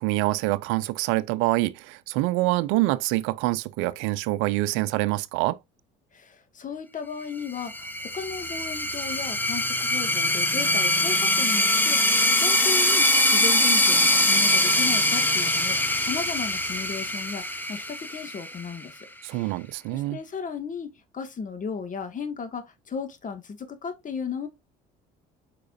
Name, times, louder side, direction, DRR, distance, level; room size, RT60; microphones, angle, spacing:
voice 1, 0.0-5.6 19.2-20.2, right 19 dB, 75° right, 0.5 m, -25 dB
voice 2, 6.1-19.5 19.9-24.5, left 5 dB, 40° left, 2.0 m, -35 dB
sound 1, 7.6-18.8, left 1 dB, 10° left, 1.5 m, -23 dB
8.4 x 4.9 x 2.6 m
hypercardioid pair, 70°, 21 cm